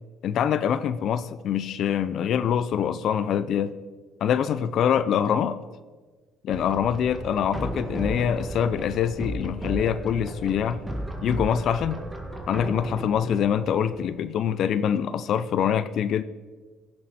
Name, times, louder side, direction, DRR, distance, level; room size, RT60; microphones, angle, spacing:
voice 1, 0.2-3.7 4.2-5.6 6.4-10.8 11.2-12.0 12.5-16.2, left 8 dB, 60° left, 14 dB, 0.5 m, -24 dB
sound 1, 6.5-14.1, right 1 dB, 10° right, 1.8 m, -34 dB
15.0 x 7.6 x 4.3 m, 1.4 s
cardioid pair, 95°, 0 cm